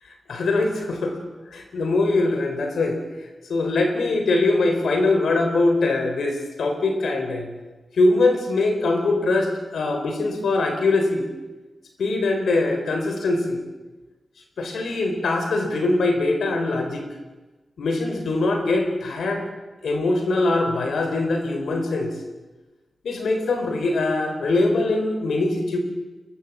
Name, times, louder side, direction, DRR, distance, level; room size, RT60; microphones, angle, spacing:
voice 1, 0.3-1.1 1.5-3.0 3.5-7.5 7.9-11.3 12.0-13.6 14.6-17.0 17.8-19.4 19.8-22.2 23.0-25.8, left 2 dB, 85° left, 4 dB, 4.2 m, -22 dB
23.0 x 22.0 x 7.5 m, 1.2 s
cardioid pair, 50°, 0 cm